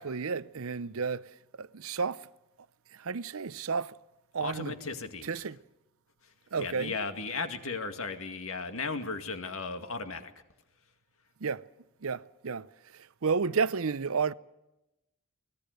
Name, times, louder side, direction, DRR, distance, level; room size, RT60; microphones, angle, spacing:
voice 1, 0.0-2.3 2.9-4.0 4.3-4.8 5.0-5.6 6.5-7.0 11.4-11.7 12.0-14.3, right 5 dB, 65° right, 0.7 m, -32 dB
voice 2, 4.4-5.3 6.2-10.3, left 4 dB, 65° left, 2.2 m, -36 dB
24.5 x 19.0 x 6.7 m
head